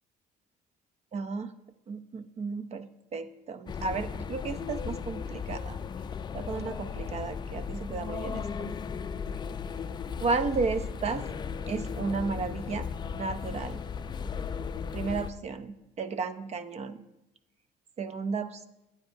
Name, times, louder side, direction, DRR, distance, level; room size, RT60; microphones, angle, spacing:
voice 1, 1.1-1.5 1.9-5.8 6.3-8.8 10.2-11.3 11.7-13.8 14.9-17.0 18.0-18.7, right 4 dB, 40° right, 12 dB, 0.6 m, -33 dB
sound 1, 3.7-15.3, left 6 dB, 25° left, 0.4 m, -36 dB
12.0 x 9.5 x 2.6 m, 0.93 s
cardioid pair, 110°, 17 cm